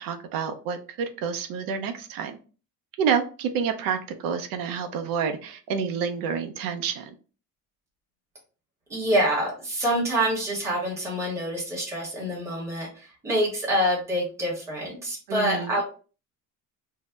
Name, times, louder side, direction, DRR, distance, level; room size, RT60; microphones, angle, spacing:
voice 1, 0.0-2.4 3.0-7.1 15.3-15.7, right 6 dB, 65° right, 7 dB, 0.6 m, -28 dB
voice 2, 8.9-15.8, equal, 10° right, -4 dB, 0.9 m, -26 dB
2.7 x 2.0 x 3.3 m, 0.36 s
cardioid pair, 170°, 37 cm